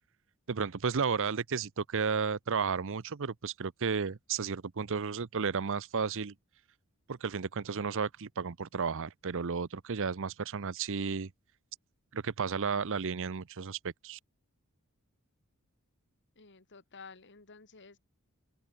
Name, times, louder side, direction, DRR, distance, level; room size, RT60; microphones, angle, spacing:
voice 1, 0.5-6.3 7.1-11.3 12.1-14.2, right 5 dB, 60° right, 0.7 m, -33 dB
voice 2, 16.4-18.0, left 4 dB, 55° left, 2.1 m, -52 dB
open air
head